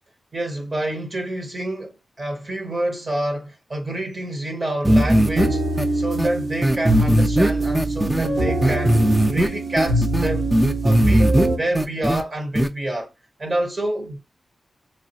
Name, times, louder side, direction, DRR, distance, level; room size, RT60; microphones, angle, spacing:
voice 1, 0.3-5.6 5.9-10.5 10.8-13.1 13.4-14.2, right 1 dB, 40° right, 0.8 m, -28 dB
sound 1, 4.8-5.5 5.8-5.9 6.2-6.3 6.6-8.3 8.6-9.5 9.8-11.5 11.7-12.2 12.5-12.7, right 1 dB, 5° right, 0.4 m, -18 dB
sound 2, 4.9-11.6, right 1 dB, 65° right, 0.8 m, -23 dB
3.1 x 2.3 x 2.7 m
wide cardioid pair, 110°, 0 cm